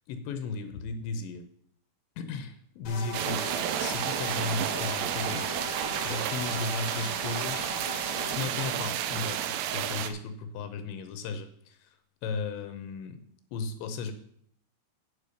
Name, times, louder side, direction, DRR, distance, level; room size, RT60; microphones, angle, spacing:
voice 1, 0.1-1.4 2.2-3.4 3.8-7.7 8.3-12.0 12.2-13.2 13.5-14.1, left 4 dB, 80° left, 8 dB, 3.0 m, -35 dB
sound 1, 2.8-8.4, left 3 dB, 55° left, 2.3 m, -39 dB
sound 2, 3.1-10.1, right 10 dB, 80° right, 2.7 m, -31 dB
9.0 x 6.9 x 6.3 m, 0.68 s
omnidirectional pair, 5.2 m